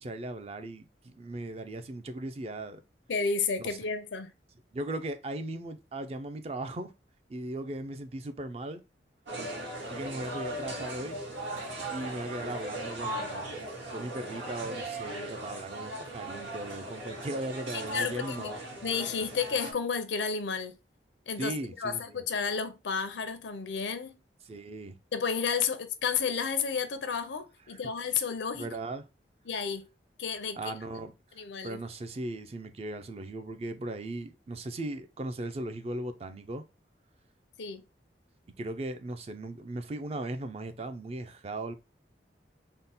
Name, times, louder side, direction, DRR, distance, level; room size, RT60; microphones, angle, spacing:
voice 1, 0.0-2.8 3.6-3.8 4.7-6.9 7.3-8.8 9.9-11.2 11.9-13.6 13.9-18.6 21.4-22.2 24.5-25.0 27.7-27.9 28.5-29.0 30.6-36.6 38.6-41.7, right 2 dB, 35° right, 0.4 m, -38 dB
voice 2, 3.1-4.3 17.9-18.5 18.8-20.8 21.3-24.2 25.1-28.7 29.5-29.9 30.2-30.7 31.4-31.8 37.6-37.8, left 6 dB, 85° left, 0.6 m, -31 dB
sound 1, 9.3-19.7, right 1 dB, 80° right, 1.5 m, -38 dB
3.7 x 2.1 x 4.0 m
head